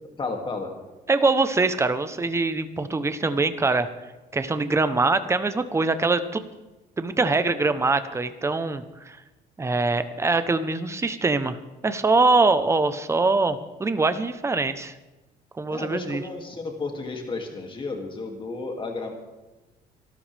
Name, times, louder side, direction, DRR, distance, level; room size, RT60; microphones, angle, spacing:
voice 1, 0.2-0.7 15.7-19.1, left 3 dB, 30° left, 2 dB, 2.6 m, -32 dB
voice 2, 1.1-3.9 4.3-6.4 7.0-9.2 9.6-11.6 11.8-14.9 15.6-16.2, right 3 dB, 15° right, 11 dB, 1.0 m, -23 dB
25.5 x 13.0 x 3.5 m, 1.1 s
cardioid pair, 110°, 17 cm